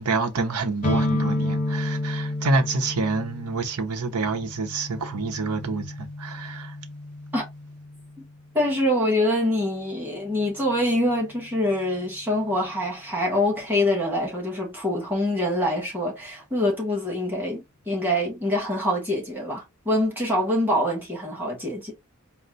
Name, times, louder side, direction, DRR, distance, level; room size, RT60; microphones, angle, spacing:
voice 1, 0.0-6.8, right 3 dB, 90° right, 0.8 m, -27 dB
sound 1, 0.8-8.4, left 1 dB, 35° left, 0.6 m, -30 dB
voice 2, 8.5-21.9, left 1 dB, 10° right, 1.8 m, -25 dB
4.3 x 2.1 x 3.9 m
head